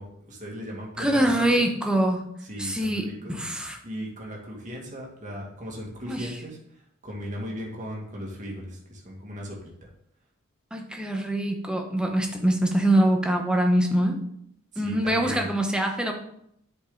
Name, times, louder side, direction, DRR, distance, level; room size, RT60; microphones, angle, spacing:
voice 1, 0.0-1.7 2.5-3.4 3.8-6.6 7.0-9.6 14.7-15.5, equal, 35° right, -2 dB, 2.1 m, -37 dB
voice 2, 1.0-2.3 2.6-3.8 6.1-6.4 10.7-14.2 14.8-16.1, right 1 dB, 5° right, 2 dB, 1.0 m, -24 dB
10.0 x 5.3 x 3.9 m, 0.71 s
head